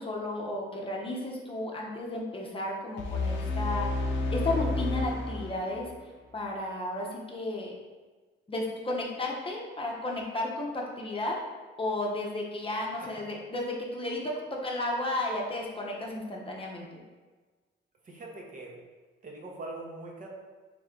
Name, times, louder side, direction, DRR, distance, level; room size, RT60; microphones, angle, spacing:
voice 1, 0.0-3.9 4.3-5.9 6.3-7.7 8.5-11.4 11.8-17.0, left 1 dB, 25° left, -2 dB, 0.7 m, -33 dB
sound 1, 3.0-6.0, left 2 dB, 70° left, 0.6 m, -31 dB
voice 2, 13.0-13.3 18.0-18.8 19.2-20.3, right 2 dB, 40° right, -1 dB, 0.8 m, -42 dB
3.3 x 3.2 x 3.7 m, 1.3 s
cardioid pair, 90°, 20 cm